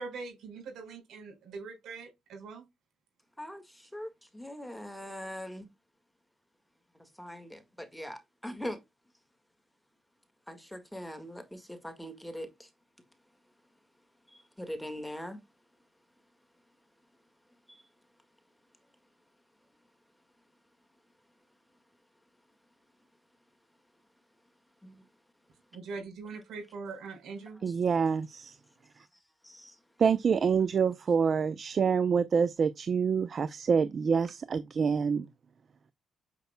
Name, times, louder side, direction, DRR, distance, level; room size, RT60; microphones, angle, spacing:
voice 1, 0.0-2.6 25.7-27.6, right 4 dB, 75° right, 4.8 m, -42 dB
voice 2, 3.4-5.7 7.0-8.8 10.5-12.7 14.3-15.4 17.7-17.9 24.8-25.0 29.4-29.8, equal, 5° left, 1.7 m, -42 dB
voice 3, 27.6-28.6 30.0-35.3, right 6 dB, 45° right, 0.5 m, -26 dB
8.0 x 6.8 x 2.2 m
cardioid pair, 90°, 0 cm